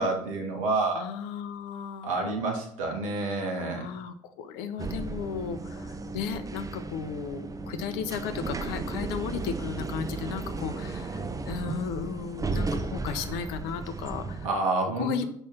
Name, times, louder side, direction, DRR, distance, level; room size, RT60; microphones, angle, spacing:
voice 1, 0.0-1.0 2.0-3.9 14.4-15.2, right 3 dB, 75° right, 2 dB, 2.2 m, -28 dB
voice 2, 0.9-2.1 3.7-14.5 14.8-15.2, left 6 dB, 65° left, 10 dB, 1.0 m, -35 dB
sound 1, 4.8-14.5, right 3 dB, 20° right, 0.9 m, -34 dB
6.4 x 5.6 x 5.9 m, 0.66 s
figure-of-eight pair, 60°, 18 cm